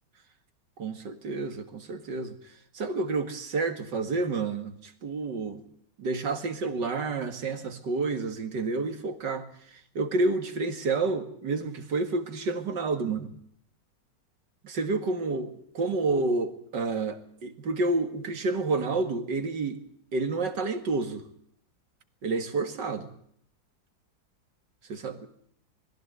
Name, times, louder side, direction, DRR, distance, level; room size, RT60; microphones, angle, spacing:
voice 1, 0.8-2.4 2.7-5.6 6.0-9.5 10.0-13.3 14.6-19.8 20.1-21.2 22.2-23.1 24.9-25.3, right 3 dB, 70° right, 8 dB, 2.6 m, -29 dB
21.5 x 15.5 x 8.1 m, 0.68 s
omnidirectional pair, 2.0 m